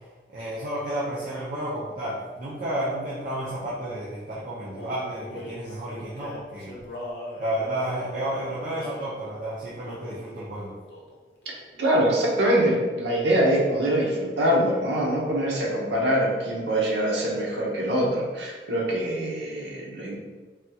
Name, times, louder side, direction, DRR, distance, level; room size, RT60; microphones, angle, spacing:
voice 1, 0.3-6.7 7.4-10.7, right 1 dB, 50° right, -7 dB, 0.5 m, -31 dB
Male singing, 4.7-9.1 9.8-10.3 10.9-11.2 11.4-12.4, left 1 dB, 70° left, 0.6 m, -41 dB
voice 2, 11.8-20.2, right 1 dB, 80° right, -3 dB, 0.8 m, -24 dB
3.4 x 2.2 x 2.8 m, 1.4 s
head